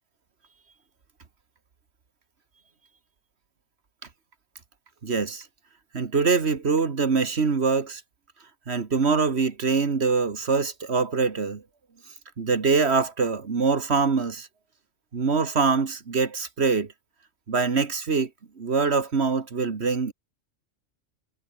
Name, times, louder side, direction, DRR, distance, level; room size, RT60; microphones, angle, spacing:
voice 1, 5.0-5.5 5.9-8.0 8.7-11.6 12.4-14.5 15.1-16.9 17.5-18.3 18.6-20.1, right 4 dB, 65° right, 1.9 m, -24 dB
omnidirectional pair, 1.2 m